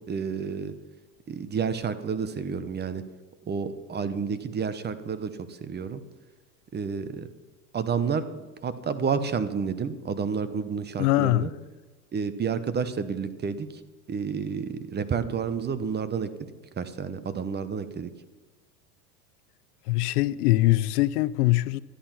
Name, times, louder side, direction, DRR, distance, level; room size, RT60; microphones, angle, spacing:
voice 1, 0.1-0.7 1.3-3.0 3.5-5.3 5.6-6.0 6.7-7.3 7.7-8.2 8.6-11.5 12.1-13.7 14.1-16.3 16.8-18.1, right 6 dB, 20° right, 1.0 m, -30 dB
voice 2, 11.0-11.5 19.9-21.8, left 18 dB, 75° left, 0.7 m, -22 dB
13.0 x 11.0 x 5.9 m
supercardioid pair, 115°, 46 cm